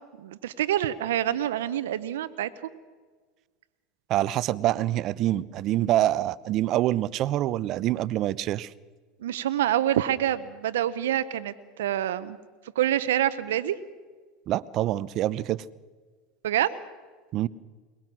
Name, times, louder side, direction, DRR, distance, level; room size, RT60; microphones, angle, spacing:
voice 1, 0.2-2.5 9.2-12.4 12.8-13.8 16.4-16.8, right 12 dB, 80° right, 13 dB, 0.8 m, -26 dB
voice 2, 4.1-8.7 14.5-15.6 17.3-17.5, right 14 dB, 50° right, 19 dB, 0.7 m, -26 dB
22.0 x 19.5 x 6.2 m, 1.4 s
hypercardioid pair, 90°, 0 cm